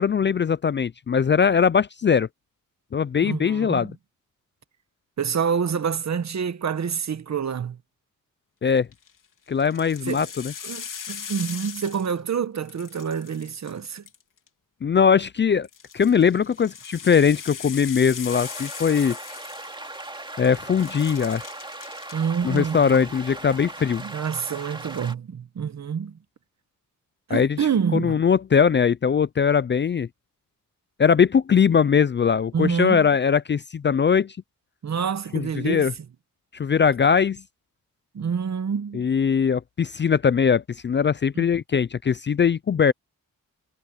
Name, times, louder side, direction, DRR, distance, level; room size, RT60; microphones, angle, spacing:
voice 1, 0.0-2.3 2.9-3.9 8.6-8.9 9.5-10.5 14.8-15.7 15.9-19.2 20.4-21.4 22.4-24.0 27.3-27.6 27.9-30.1 31.0-34.4 35.3-35.9 36.5-37.4 38.9-42.9, left 6 dB, 35° left, 0.4 m, -21 dB
voice 2, 3.2-3.9 5.2-7.8 10.1-10.3 10.6-14.0 22.1-22.8 24.0-26.2 27.3-28.2 32.5-33.1 34.8-35.9 38.1-39.1 41.3-41.4, right 7 dB, 55° right, 1.3 m, -27 dB
sound 1, 8.8-9.1 9.6-12.4 12.6-14.5 15.6-20.2 20.4-22.2 22.5-23.0, left 7 dB, 70° left, 3.6 m, -39 dB
sound 2, 18.3-25.1, right 2 dB, 15° right, 2.4 m, -38 dB
wide cardioid pair, 135°, 33 cm